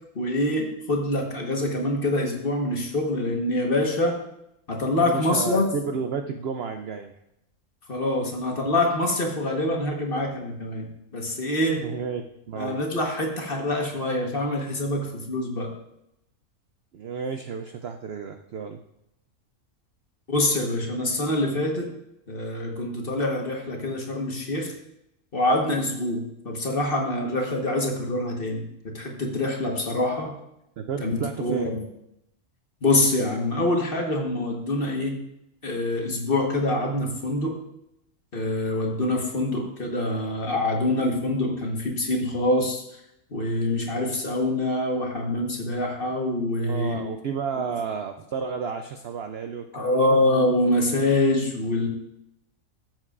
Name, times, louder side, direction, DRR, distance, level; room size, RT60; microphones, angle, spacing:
voice 1, 0.1-4.2 4.7-5.7 7.9-11.8 12.5-15.7 20.3-21.9 22.3-24.7 25.3-30.3 31.0-31.9 32.8-35.2 35.6-37.6 38.3-42.8 43.3-47.0 49.7-51.9, left 1 dB, 40° left, 1 dB, 1.4 m, -25 dB
voice 2, 5.0-7.1 11.8-12.2 12.5-12.8 16.9-18.8 30.8-31.7 46.6-50.2, right 6 dB, 65° right, 6 dB, 0.6 m, -32 dB
14.0 x 7.7 x 2.4 m, 0.82 s
omnidirectional pair, 1.6 m